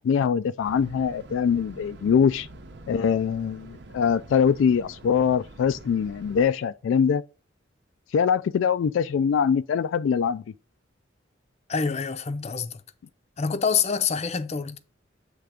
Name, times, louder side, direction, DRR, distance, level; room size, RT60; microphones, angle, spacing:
voice 1, 0.0-2.5 2.9-7.2 8.1-10.4, left 7 dB, 85° left, 0.3 m, -23 dB
sound 1, 0.6-6.4, right 2 dB, 65° right, 0.8 m, -46 dB
voice 2, 11.7-12.8 13.4-14.8, left 6 dB, 35° left, 0.6 m, -26 dB
7.8 x 3.4 x 4.9 m
head